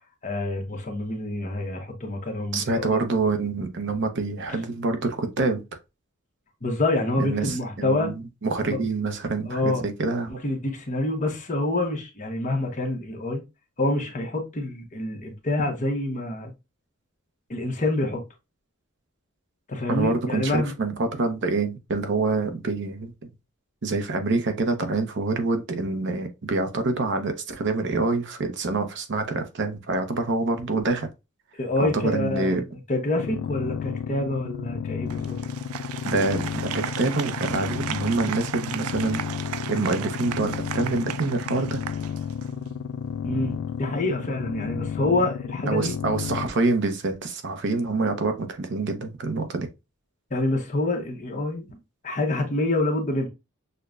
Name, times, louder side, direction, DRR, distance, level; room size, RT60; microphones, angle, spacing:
voice 1, 0.2-3.0 6.6-8.1 9.5-9.9 10.4-13.4 13.8-16.5 17.5-18.2 19.7-20.7 31.6-35.4 43.2-46.0 50.3-51.7 52.0-53.3, left 2 dB, 35° left, 1.0 m, -27 dB
voice 2, 2.5-5.6 7.2-8.1 8.4-10.4 19.9-23.1 23.8-31.1 31.8-32.6 36.0-39.2 39.7-41.8 45.7-49.7, right 3 dB, 55° right, 0.7 m, -26 dB
sound 1, 33.2-46.5, left 7 dB, 70° left, 0.3 m, -32 dB
Applause, 35.1-42.7, right 10 dB, 80° right, 0.3 m, -35 dB
6.4 x 2.2 x 2.4 m
head